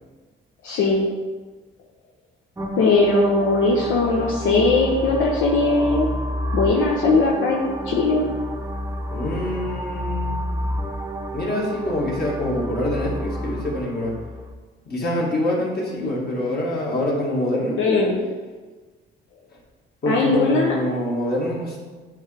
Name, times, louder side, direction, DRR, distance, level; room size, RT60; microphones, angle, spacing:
voice 1, 0.6-1.1 2.8-6.1 6.5-8.3 17.8-18.3 20.1-20.8, left 3 dB, 85° left, -1 dB, 0.7 m, -19 dB
sound 1, 2.6-14.5, equal, 15° right, 0.7 m, -30 dB
voice 2, 9.1-10.3 11.3-14.1 14.9-17.8 20.0-21.8, left 1 dB, 50° left, -3 dB, 1.8 m, -25 dB
8.6 x 3.6 x 3.4 m, 1.3 s
cardioid pair, 90°, 20 cm